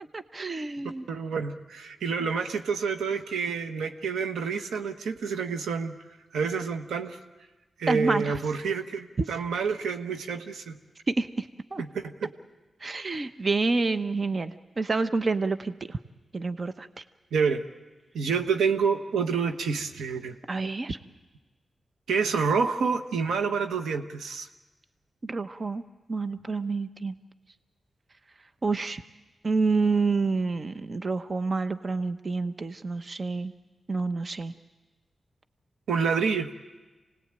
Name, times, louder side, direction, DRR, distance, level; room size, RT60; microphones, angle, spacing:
voice 1, 0.1-1.1 7.9-8.4 9.2-9.3 11.1-11.8 12.8-16.0 16.3-17.0 20.5-21.0 25.2-25.8 26.1-27.1 28.6-29.0 29.4-33.5 33.9-34.5, right 3 dB, 45° right, 10 dB, 0.9 m, -28 dB
voice 2, 1.1-6.0 6.3-7.2 7.8-10.8 11.8-12.3 17.3-17.6 18.1-20.3 22.1-24.5 35.9-36.5, right 5 dB, 90° right, 7 dB, 1.2 m, -28 dB
26.0 x 19.0 x 9.0 m, 1.2 s
cardioid pair, 50°, 0 cm